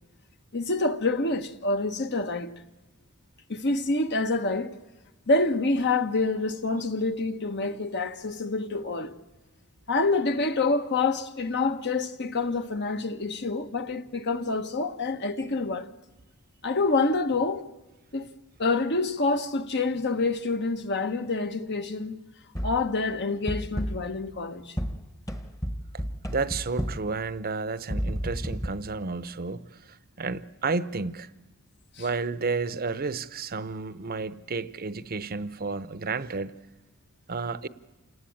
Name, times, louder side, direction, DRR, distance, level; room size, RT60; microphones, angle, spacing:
voice 1, 0.5-2.5 3.5-4.7 5.3-9.1 9.9-15.9 16.6-17.7 18.1-18.3 18.6-22.2 22.6-24.8 32.0-32.1, left 3 dB, 50° left, 1.3 m, -27 dB
sound 1, 22.5-23.0 23.5-24.2 24.8-27.2 27.9-28.7, equal, 15° left, 1.2 m, -32 dB
voice 2, 26.3-29.7 30.2-31.3 32.0-36.5 37.3-37.7, right 4 dB, 45° right, 0.8 m, -31 dB
28.0 x 18.5 x 8.8 m
head